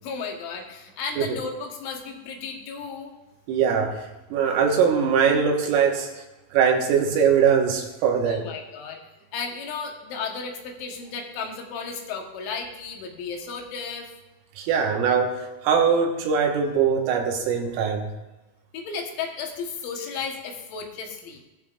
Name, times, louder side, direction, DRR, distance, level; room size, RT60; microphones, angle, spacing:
voice 1, 0.0-3.1 8.2-9.0 9.3-14.1 18.7-21.4, left 5 dB, 75° left, 2 dB, 3.6 m, -34 dB
voice 2, 3.5-6.1 6.5-8.4 14.6-18.1, right 6 dB, 85° right, 1 dB, 4.0 m, -22 dB
18.0 x 12.0 x 2.5 m, 1.1 s
omnidirectional pair, 5.7 m